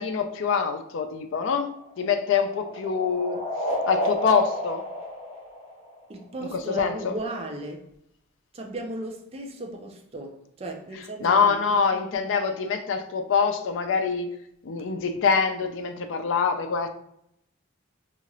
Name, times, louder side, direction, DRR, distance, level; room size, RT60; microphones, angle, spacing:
voice 1, 0.0-3.4 3.9-4.8 6.5-7.1 11.2-14.3 14.6-16.9, left 5 dB, 65° left, 0.3 m, -25 dB
sound 1, 1.6-6.2, equal, 30° left, 0.9 m, -31 dB
voice 2, 6.1-7.9 8.5-11.4, right 1 dB, 30° right, 0.4 m, -35 dB
2.8 x 2.4 x 3.0 m
head